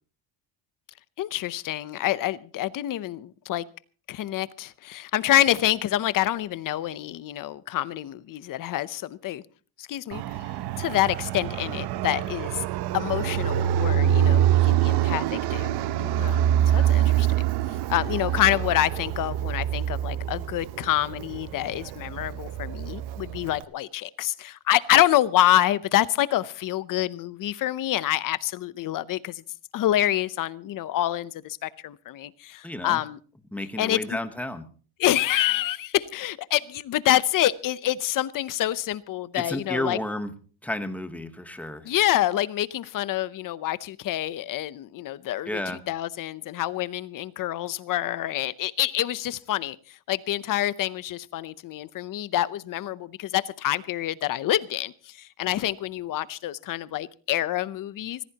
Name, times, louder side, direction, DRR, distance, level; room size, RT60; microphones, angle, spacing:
voice 1, 1.2-3.7 4.1-9.4 9.8-10.2 10.8-12.6 12.9-15.7 16.0-16.4 16.7-17.5 17.9-29.4 29.7-33.2 33.8-34.0 35.0-40.0 41.8-45.6 45.9-49.8 50.1-58.2, left 13 dB, 50° left, 0.7 m, -27 dB
Fixed-wing aircraft airplane, 10.1-23.6, right 11 dB, 65° right, 0.9 m, -25 dB
voice 2, 16.6-16.9 32.6-33.0 33.5-34.7 39.3-40.3 40.6-41.9 45.4-45.8, left 1 dB, 5° left, 1.1 m, -32 dB
24.5 x 15.5 x 2.9 m
cardioid pair, 170°, 42 cm